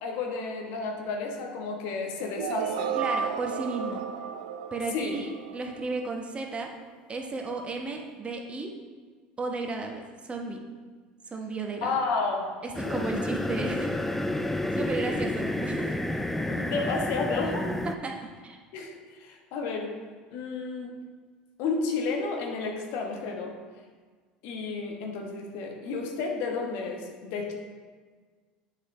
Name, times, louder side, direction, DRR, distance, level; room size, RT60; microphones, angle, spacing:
voice 1, 0.0-2.9 4.9-5.2 11.8-12.4 12.8-13.1 16.5-17.7 18.7-18.9 19.2-19.9 20.3-20.9 21.6-23.5 24.4-27.5, left 4 dB, 65° left, 2 dB, 1.2 m, -31 dB
sound 1, 2.4-6.3, right 7 dB, 85° right, 0.4 m, -33 dB
voice 2, 2.9-4.0 4.7-6.7 7.1-8.7 9.4-10.6 11.3-12.1 12.6-13.9 14.7-16.0 17.8-18.1 18.4-18.6, right 3 dB, 25° right, 2 dB, 1.0 m, -34 dB
sound 2, 12.7-17.9, left 1 dB, 5° left, 0.4 m, -30 dB
7.9 x 5.7 x 3.2 m, 1.5 s
hypercardioid pair, 80°, 4 cm